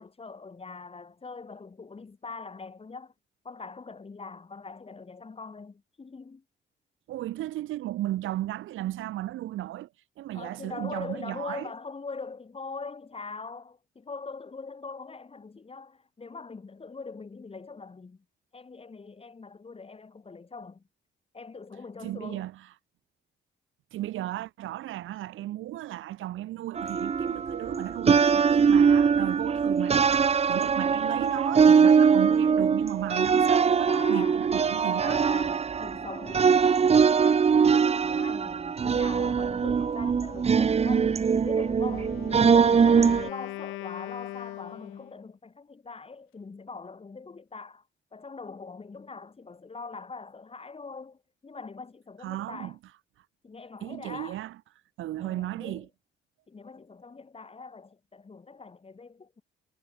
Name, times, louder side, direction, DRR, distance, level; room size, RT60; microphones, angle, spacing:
voice 1, 0.0-3.1 3.4-6.4 10.3-18.2 18.5-20.8 21.3-22.5 33.7-34.5 34.9-42.1 42.4-47.8 48.1-52.8 53.4-54.4 55.2-55.9 56.5-59.4, left 4 dB, 30° left, 3.8 m, -42 dB
voice 2, 7.1-9.9 10.2-11.7 22.0-22.7 23.9-35.2 52.2-52.8 53.8-54.5 55.0-55.9, right 14 dB, 85° right, 2.3 m, -35 dB
sound 1, 26.8-43.3, right 6 dB, 30° right, 0.7 m, -22 dB
Wind instrument woodwind instrument, 41.7-45.2, left 17 dB, 90° left, 0.8 m, -40 dB
cardioid pair, 90°, 20 cm